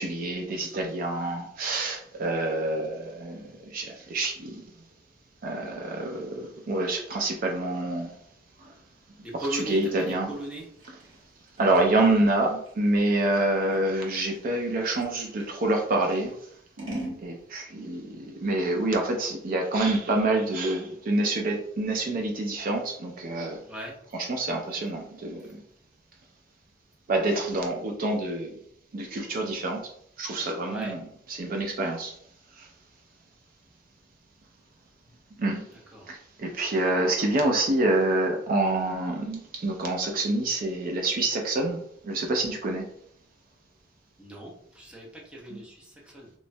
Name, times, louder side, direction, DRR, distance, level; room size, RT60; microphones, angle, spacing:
voice 1, 0.0-4.6 5.4-8.1 8.6-8.7 9.3-10.3 11.6-16.3 17.2-23.6 24.1-25.6 27.1-28.5 28.9-29.8 30.2-31.0 31.3-32.1 32.6-32.7 35.4-35.6 36.1-41.8 42.0-42.9 45.5-45.6, right 2 dB, 45° right, 2 dB, 0.4 m, -27 dB
voice 2, 9.2-10.7 23.7-23.9 30.7-30.9 35.9-36.1 44.2-46.3, right 1 dB, 5° right, -2 dB, 0.6 m, -38 dB
Scissors, 9.4-15.6 16.1-17.2, right 1 dB, 75° right, 0.9 m, -42 dB
3.0 x 2.1 x 2.6 m, 0.69 s
head